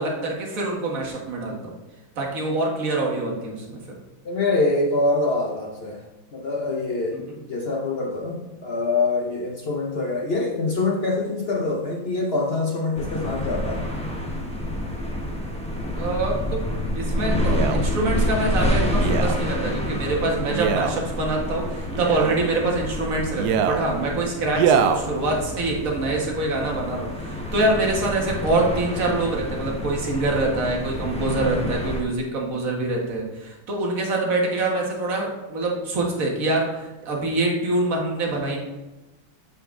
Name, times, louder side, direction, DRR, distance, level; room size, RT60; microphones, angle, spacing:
voice 1, 0.0-1.7 2.2-3.8 7.1-7.2 16.0-16.7 17.0-38.6, right 2 dB, 45° right, -1 dB, 1.8 m, -25 dB
voice 2, 4.2-6.0 6.3-13.8, left 3 dB, 70° left, 0 dB, 0.5 m, -25 dB
sound 1, 12.9-32.0, left 1 dB, 10° left, 0.3 m, -28 dB
Male speech man speaking, 17.4-17.8 19.0-19.4 20.5-21.0 21.9-22.4 23.3-23.8 24.5-25.0 25.7-25.8, right 7 dB, 75° right, 0.9 m, -23 dB
8.4 x 5.6 x 3.7 m, 1.1 s
omnidirectional pair, 2.2 m